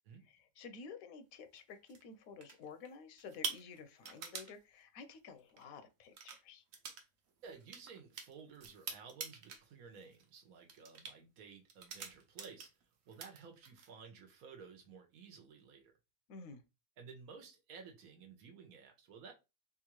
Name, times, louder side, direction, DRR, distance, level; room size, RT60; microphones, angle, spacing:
voice 1, 0.2-6.6 16.3-16.6, left 5 dB, 80° left, 1.1 m, -52 dB
sound 1, 1.6-2.0 2.4-2.9 3.2-4.5 5.5-5.6 6.1-6.4 6.7-7.0 7.3-9.6 10.0-10.3 10.7-11.1 11.7-12.8 13.1-13.9, right 6 dB, 70° right, 1.0 m, -45 dB
voice 2, 7.4-12.7 13.1-15.9 17.0-19.3, right 5 dB, 90° right, 1.3 m, -54 dB
3.7 x 2.4 x 3.0 m
omnidirectional pair, 1.5 m